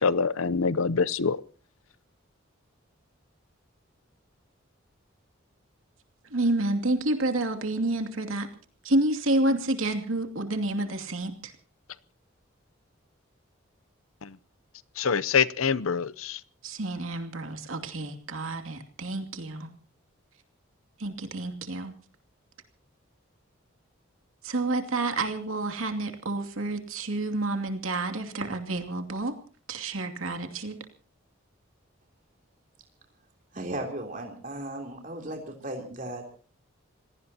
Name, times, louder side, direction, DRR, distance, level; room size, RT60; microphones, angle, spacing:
voice 1, 0.0-1.4 14.2-14.4 15.0-16.4, left 5 dB, 90° left, 18 dB, 0.7 m, -25 dB
voice 2, 6.3-8.5 8.8-11.5 16.6-19.7 21.0-21.9 24.4-29.3 29.7-30.8, right 2 dB, 85° right, 5 dB, 2.6 m, -29 dB
voice 3, 33.5-36.2, right 1 dB, 40° right, 2 dB, 3.5 m, -36 dB
27.5 x 18.0 x 2.9 m, 0.39 s
head